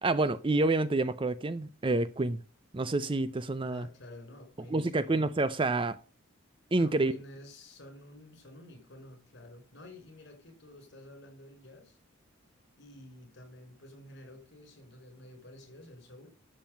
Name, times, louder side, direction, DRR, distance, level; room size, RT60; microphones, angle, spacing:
voice 1, 0.0-2.4 2.7-3.9 4.7-6.0 6.7-7.2, right 2 dB, 25° right, 0.5 m, -28 dB
voice 2, 3.6-5.1 6.7-12.0 12.8-16.3, left 1 dB, 55° left, 5.6 m, -51 dB
11.5 x 7.5 x 5.5 m
head